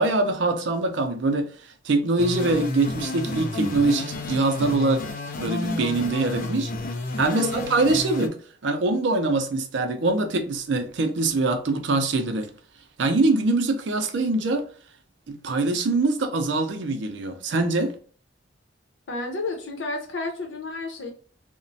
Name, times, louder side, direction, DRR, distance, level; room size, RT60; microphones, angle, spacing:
voice 1, 0.0-1.5 1.8-5.0 5.4-6.7 7.2-8.3 8.6-12.5 13.0-14.6 15.3-17.9, right 2 dB, 75° right, 0.5 m, -23 dB
sound 1, 2.2-8.3, left 2 dB, 45° left, 0.4 m, -31 dB
voice 2, 7.3-7.7 19.1-21.1, left 2 dB, 85° left, 0.7 m, -31 dB
2.9 x 2.1 x 2.6 m
head